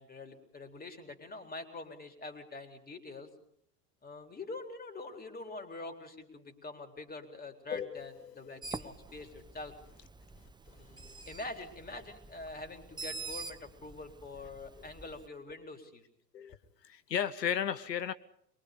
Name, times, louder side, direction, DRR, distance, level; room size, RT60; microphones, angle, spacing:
voice 1, 0.0-3.3 4.0-9.7 10.7-16.0, left 2 dB, 20° left, 5 dB, 3.9 m, -45 dB
voice 2, 7.7-8.0 16.3-16.6 16.8-18.1, left 8 dB, 85° left, 15 dB, 0.8 m, -33 dB
Bird, 8.6-15.3, right 4 dB, 10° right, 0.9 m, -46 dB
23.0 x 23.0 x 5.2 m, 0.71 s
figure-of-eight pair, 80°, 48 cm